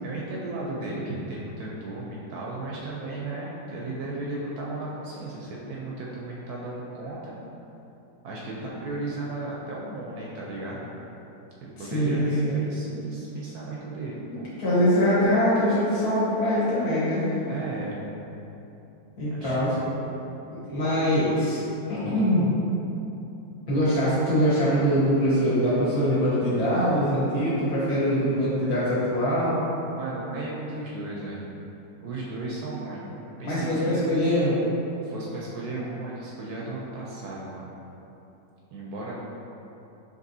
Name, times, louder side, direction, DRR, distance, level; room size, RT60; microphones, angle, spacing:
voice 1, 0.0-7.3 8.2-10.9 11.6-14.5 17.5-18.0 19.3-19.6 29.9-31.4 32.0-33.1 33.4-34.1 35.0-37.7 38.7-39.1, right 2 dB, 70° right, -4 dB, 1.0 m, -35 dB
voice 2, 11.8-12.6 14.3-17.3 19.2-19.7 20.5-21.6 21.9-22.6 23.7-29.6 33.4-34.6, equal, 60° left, -10 dB, 1.7 m, -23 dB
5.2 x 3.1 x 2.7 m, 2.9 s
omnidirectional pair, 1.9 m